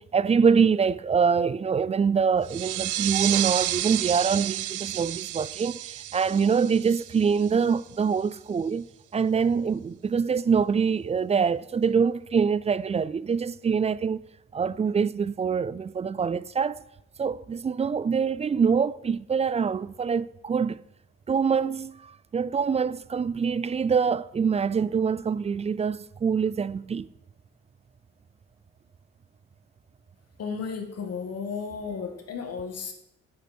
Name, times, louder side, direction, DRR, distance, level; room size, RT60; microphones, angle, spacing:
voice 1, 0.0-14.2 14.5-16.8 17.2-20.8 21.3-27.1, right 6 dB, 20° right, 0.3 m, -25 dB
sound 1, 2.4-7.8, right 14 dB, 80° right, 0.6 m, -31 dB
voice 2, 30.4-32.9, left 5 dB, 55° left, 2.0 m, -34 dB
10.5 x 8.1 x 4.4 m
cardioid pair, 90°, 30 cm